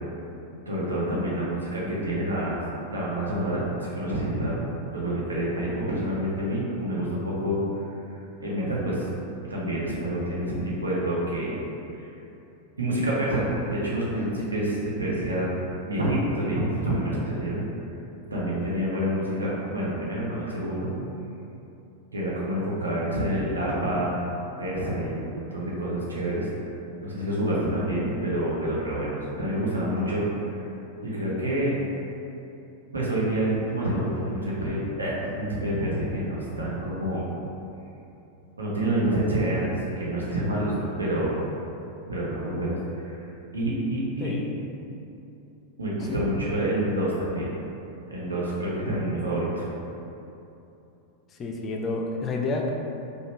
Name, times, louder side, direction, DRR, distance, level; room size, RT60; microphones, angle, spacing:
voice 1, 0.7-2.6 2.9-4.5 4.9-7.6 8.4-9.1 9.5-11.6 11.9-12.1 12.8-15.6 15.9-17.6 18.3-20.9 22.1-24.2 24.6-26.5 27.0-30.2 31.0-31.7 32.9-37.3 38.6-39.7 40.0-41.4 42.1-43.2 43.5-44.3 45.8-47.5 48.1-49.7, right 1 dB, 75° right, -5 dB, 0.8 m, -27 dB
voice 2, 44.2-44.5 46.0-46.2 51.4-52.7, left 3 dB, 25° left, 1 dB, 0.4 m, -29 dB
4.9 x 2.2 x 3.1 m, 2.9 s
figure-of-eight pair, 90°, 0 cm